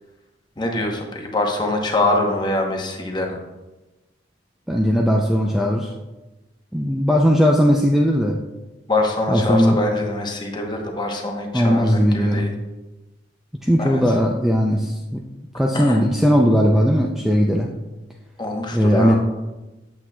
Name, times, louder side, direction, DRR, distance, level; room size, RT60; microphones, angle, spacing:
voice 1, 0.6-3.4 8.9-12.5 13.8-14.2 15.7-16.0 18.4-19.2, left 2 dB, 25° left, 2 dB, 0.9 m, -24 dB
voice 2, 4.7-5.9 6.7-8.4 9.3-9.7 11.5-12.5 13.6-15.2 15.5-17.7 18.7-19.2, equal, ahead, -1 dB, 0.4 m, -18 dB
8.4 x 7.4 x 2.2 m, 1.1 s
head